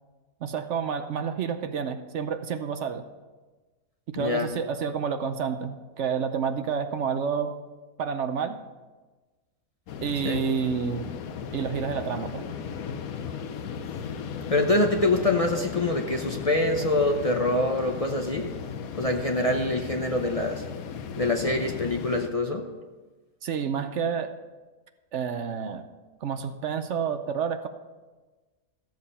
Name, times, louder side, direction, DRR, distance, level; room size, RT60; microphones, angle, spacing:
voice 1, 0.4-3.0 4.1-7.5 8.0-8.6 10.0-11.1 11.5-12.4 23.4-24.3 25.1-25.9 26.2-27.7, right 6 dB, 65° right, 9 dB, 0.9 m, -29 dB
voice 2, 4.2-4.5 10.2-10.4 14.5-18.5 18.9-20.6 21.2-22.6, left 2 dB, 30° left, 3 dB, 0.7 m, -25 dB
sound 1, 9.9-22.3, left 6 dB, 90° left, 1.2 m, -36 dB
14.0 x 7.7 x 5.5 m, 1.3 s
omnidirectional pair, 1.4 m